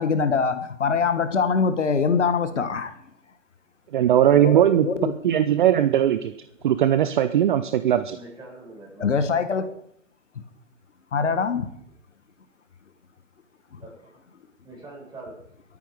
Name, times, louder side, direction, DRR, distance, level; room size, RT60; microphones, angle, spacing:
voice 1, 0.0-2.9 4.4-5.1 9.0-9.7 11.1-11.7, left 5 dB, 65° left, 1.5 m, -23 dB
voice 2, 3.9-6.3 6.6-8.2, right 11 dB, 40° right, 0.7 m, -19 dB
voice 3, 8.1-9.1 13.8-14.1 14.6-15.4, right 2 dB, 10° right, 6.4 m, -43 dB
22.5 x 9.3 x 4.9 m
figure-of-eight pair, 120°, 38 cm